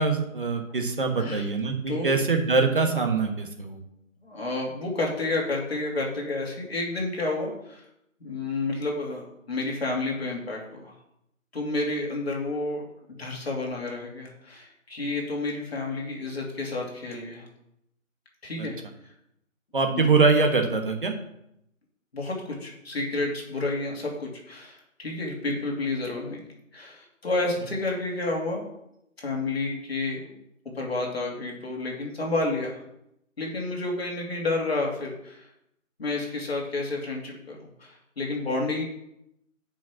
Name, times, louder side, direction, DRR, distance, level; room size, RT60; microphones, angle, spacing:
voice 1, 0.0-3.8 18.6-18.7 19.7-21.1, right 4 dB, 40° right, 4 dB, 1.4 m, -23 dB
voice 2, 4.2-7.8 8.2-10.9 11.5-12.8 13.2-17.5 18.4-18.8 19.9-20.1 22.1-26.4 26.7-28.6 29.2-30.2 30.7-32.8 33.4-35.4 36.0-38.8, left 2 dB, 50° left, -1 dB, 2.8 m, -30 dB
7.3 x 5.8 x 7.3 m, 0.79 s
figure-of-eight pair, 165°, 41 cm